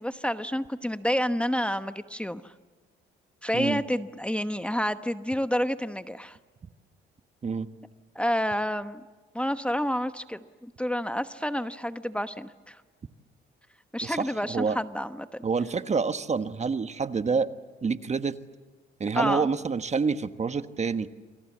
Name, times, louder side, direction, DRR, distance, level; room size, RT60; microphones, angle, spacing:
voice 1, 0.0-2.5 3.4-6.4 8.1-9.0 9.3-12.8 13.9-15.5 19.1-19.5, equal, 5° left, 10 dB, 1.1 m, -29 dB
voice 2, 14.0-14.8 15.4-17.5 17.8-18.4 19.0-21.1, right 5 dB, 35° right, 11 dB, 1.3 m, -27 dB
27.5 x 27.0 x 7.3 m, 1.4 s
cardioid pair, 90°, 20 cm